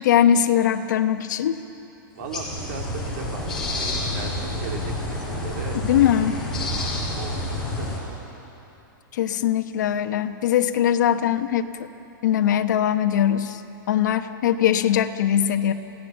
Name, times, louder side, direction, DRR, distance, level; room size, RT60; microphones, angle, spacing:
voice 1, 0.0-1.6 5.8-6.4 9.1-11.9 12.2-13.6 13.9-15.7, left 10 dB, 55° left, 7 dB, 1.0 m, -21 dB
sound 1, 2.2-8.0, left 1 dB, 5° left, 4.5 m, -29 dB
voice 2, 2.2-5.8 7.2-7.3 7.8-8.1, right 6 dB, 45° right, 2 dB, 2.4 m, -37 dB
27.5 x 17.0 x 7.2 m, 3.0 s
supercardioid pair, 175°, 12 cm